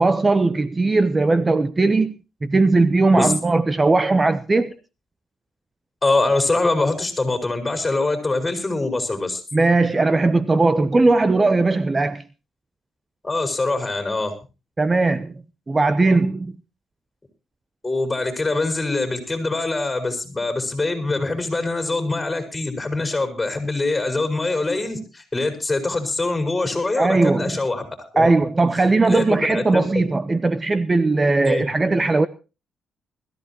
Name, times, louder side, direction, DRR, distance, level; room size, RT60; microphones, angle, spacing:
voice 1, 0.0-4.7 9.5-12.2 14.8-15.3 15.7-16.5 27.0-27.6 28.2-32.3, right 3 dB, 25° right, 0.7 m, -18 dB
voice 2, 6.0-9.4 13.2-14.3 17.8-27.9 28.1-28.3 29.1-29.9 31.5-31.7, left 2 dB, 15° left, 5.4 m, -23 dB
21.5 x 14.0 x 2.9 m
cardioid pair, 90°, 0 cm